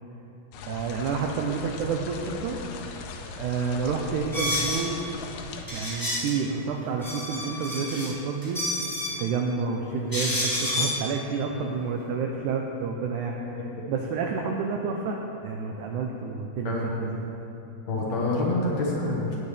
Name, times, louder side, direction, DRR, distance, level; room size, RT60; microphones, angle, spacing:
sound 1, 0.5-5.7, left 4 dB, 90° left, 2.6 m, -39 dB
voice 1, 0.7-2.6 3.4-5.0 5.7-8.6 9.2-16.7 17.0-17.2, right 5 dB, 85° right, 1 dB, 1.7 m, -29 dB
sound 2, 4.3-4.8 5.7-6.3 6.8-8.1 8.4-9.2 10.1-11.0, left 1 dB, 20° left, 0.5 m, -29 dB
voice 2, 17.9-19.4, left 2 dB, 55° left, -4 dB, 2.4 m, -26 dB
17.5 x 8.8 x 3.3 m, 2.9 s
omnidirectional pair, 4.4 m